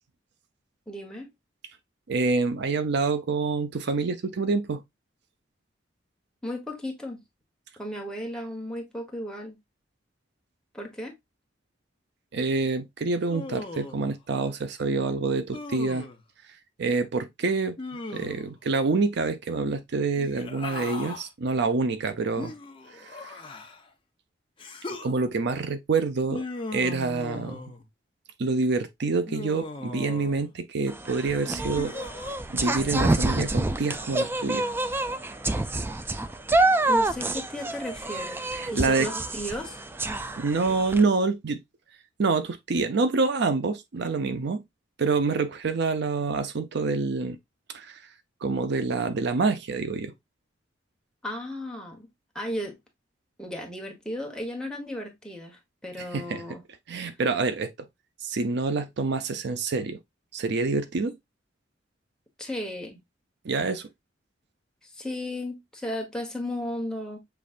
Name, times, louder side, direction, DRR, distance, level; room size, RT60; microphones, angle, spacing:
voice 1, 0.9-1.3 6.4-7.2 7.8-9.6 10.7-11.1 36.9-38.4 38.7-39.8 51.2-52.1 52.3-52.8 53.4-56.6 62.4-63.0 64.9-67.2, left 1 dB, 5° left, 1.2 m, -35 dB
voice 2, 2.1-4.8 12.3-16.1 16.8-17.8 18.1-22.5 22.9-23.4 25.0-26.4 26.7-27.7 28.4-32.0 32.5-34.7 38.5-39.1 40.4-41.6 42.2-44.6 45.0-47.4 47.7-48.0 48.4-50.1 56.0-56.4 56.9-57.9 58.2-60.0 60.3-61.2 63.4-63.9, right 4 dB, 65° right, 0.5 m, -27 dB
Human voice, 13.3-14.1 15.5-16.2 17.8-18.6 20.1-21.3 22.4-23.9 24.6-25.1 26.3-27.9 29.3-30.5 31.5-32.4, left 2 dB, 30° left, 0.8 m, -38 dB
sound 1, 30.9-41.0, right 2 dB, 10° right, 0.3 m, -27 dB
6.8 x 3.1 x 2.4 m
head